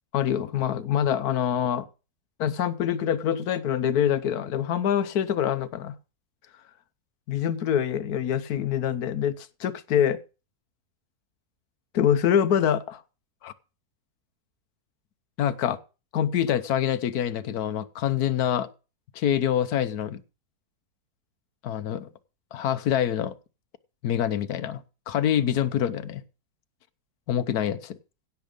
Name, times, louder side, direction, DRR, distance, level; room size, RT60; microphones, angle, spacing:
voice 1, 0.1-1.9 2.4-5.9 7.3-10.2 11.9-13.0 13.4-13.5 15.4-15.8 16.1-18.7 19.1-20.2 21.6-22.1 22.5-23.3 24.0-24.8 25.1-26.2 27.3-28.0, left 9 dB, 85° left, 1.4 m, -25 dB
16.5 x 7.1 x 5.2 m
omnidirectional pair, 1.6 m